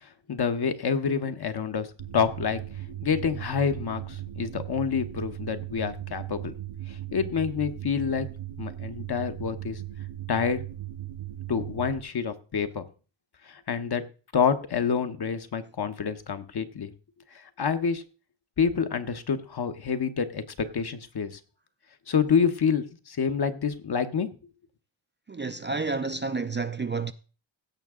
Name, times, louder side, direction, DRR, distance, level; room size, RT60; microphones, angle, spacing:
voice 1, 0.0-1.9 2.1-2.6 3.0-6.5 6.9-8.3 8.6-9.8 10.3-10.6 11.5-12.8 13.5-14.0 14.3-16.9 17.3-18.0 18.6-21.4 22.1-24.3, left 6 dB, 55° left, 1.0 m, -27 dB
sound 1, 2.0-12.0, right 13 dB, 85° right, 1.1 m, -38 dB
voice 2, 25.3-27.1, right 4 dB, 25° right, 0.4 m, -30 dB
16.0 x 5.9 x 3.7 m
wide cardioid pair, 130°, 47 cm